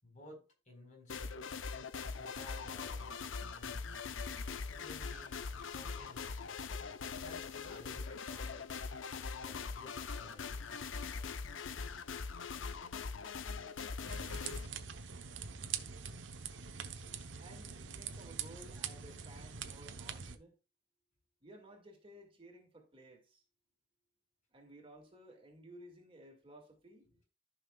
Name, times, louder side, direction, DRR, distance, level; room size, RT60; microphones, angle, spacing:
voice 1, 0.0-1.5 2.2-4.2 4.7-6.5 7.2-8.7 9.4-10.8 16.7-17.2 17.6-17.7 27.1-27.2, left 2 dB, 40° left, 4.4 m, -56 dB
sound 1, 1.1-14.7, left 5 dB, 85° left, 0.7 m, -42 dB
sound 2, 14.1-20.4, right 7 dB, 70° right, 1.0 m, -44 dB
voice 2, 17.4-20.5 21.4-23.4 24.5-27.1, right 1 dB, 30° right, 2.1 m, -56 dB
14.5 x 5.8 x 2.3 m
head